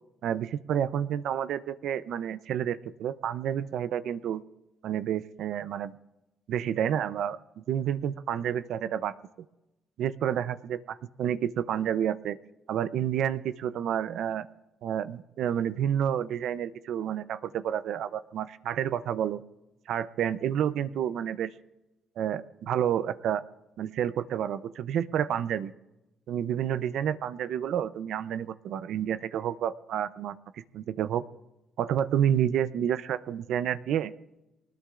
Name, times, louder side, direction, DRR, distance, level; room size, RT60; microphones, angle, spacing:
voice 1, 0.2-4.4 4.8-5.9 6.5-9.2 10.0-12.4 12.7-14.5 14.8-19.4 19.9-21.5 22.2-23.4 23.8-25.7 26.3-30.4 30.7-31.2 31.8-34.1, right 9 dB, 75° right, 14 dB, 0.6 m, -29 dB
24.0 x 19.5 x 2.5 m, 0.95 s
cardioid pair, 90°, 0 cm